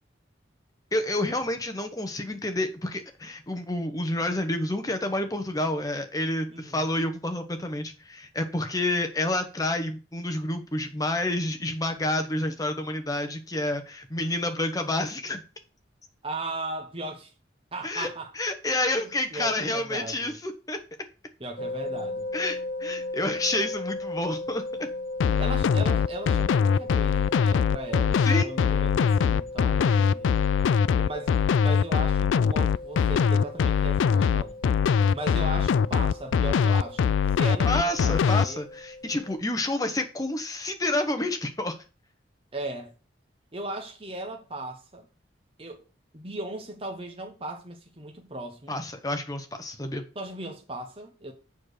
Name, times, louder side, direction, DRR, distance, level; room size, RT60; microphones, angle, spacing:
voice 1, 0.9-15.4 17.8-18.1 18.3-20.8 22.3-24.9 28.2-28.5 37.6-41.8 48.7-50.0, left 1 dB, 20° left, 1.0 m, -29 dB
voice 2, 6.5-6.8 16.2-17.3 17.7-18.3 19.0-20.3 21.4-22.3 25.3-30.4 30.9-34.6 35.1-38.6 42.5-42.9 43.5-45.1 45.6-45.8 46.1-48.8 50.1-51.3, right 2 dB, 30° right, 1.0 m, -37 dB
sound 1, 21.6-39.4, left 2 dB, 50° left, 0.6 m, -37 dB
sound 2, 25.2-38.5, left 6 dB, 90° left, 0.3 m, -22 dB
7.2 x 4.4 x 6.6 m
head